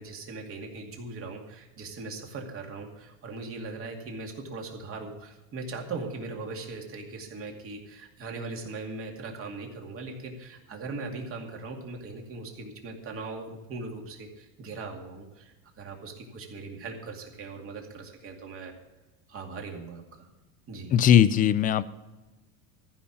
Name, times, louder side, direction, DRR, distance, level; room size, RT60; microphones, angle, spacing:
voice 1, 0.0-18.7 19.3-20.3 20.7-20.9, right 3 dB, 30° right, 2 dB, 2.4 m, -39 dB
voice 2, 20.9-21.8, left 10 dB, 20° left, 15 dB, 0.4 m, -19 dB
14.5 x 5.7 x 8.5 m, 1.1 s
supercardioid pair, 135°, 41 cm